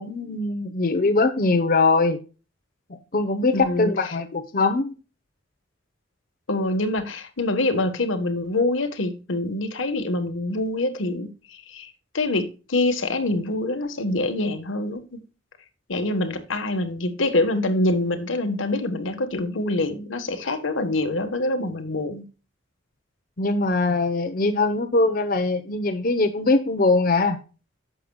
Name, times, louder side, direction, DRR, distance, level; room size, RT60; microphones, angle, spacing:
voice 1, 0.0-2.2 3.1-4.9 23.4-27.4, left 3 dB, 45° left, 0.9 m, -22 dB
voice 2, 3.5-3.9 6.5-15.2 15.9-22.2, left 2 dB, 85° left, 1.3 m, -25 dB
11.5 x 7.6 x 2.3 m
head